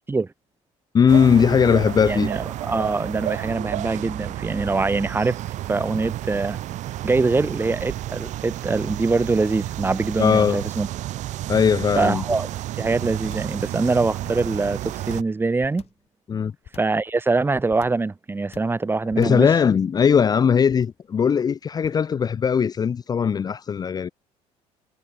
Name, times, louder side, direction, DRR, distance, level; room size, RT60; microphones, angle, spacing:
voice 1, 0.9-2.3 10.2-10.6 11.5-12.2 16.3-16.5 19.2-24.1, left 7 dB, 30° left, 0.7 m, -19 dB
sound 1, 1.1-15.2, right 14 dB, 65° right, 4.1 m, -31 dB
voice 2, 2.0-5.4 5.7-6.6 7.0-10.9 11.9-12.5 12.8-15.8 16.7-19.5, right 3 dB, 15° right, 1.6 m, -23 dB
sound 2, 13.3-13.6 14.2-14.7 15.1-16.1 16.6-17.0 17.7-18.1 18.5-18.8 19.1-19.5 20.7-21.1 21.8-22.1, left 10 dB, 50° left, 5.8 m, -46 dB
cardioid pair, 115°, 13 cm